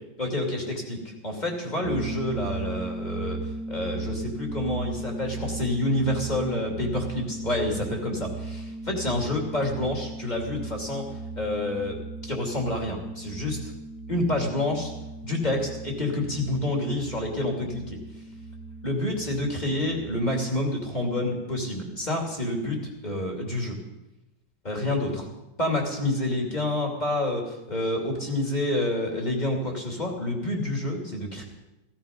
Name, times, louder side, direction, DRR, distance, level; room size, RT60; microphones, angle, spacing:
voice 1, 0.2-3.4 3.7-11.1 11.4-11.9 12.3-13.6 14.1-14.9 15.2-18.0 18.8-23.8 24.6-25.3 25.6-31.4, left 1 dB, 20° left, 0 dB, 2.7 m, -28 dB
sound 1, 1.8-20.5, right 3 dB, 55° right, 1.8 m, -37 dB
16.0 x 15.5 x 5.2 m, 0.98 s
omnidirectional pair, 2.3 m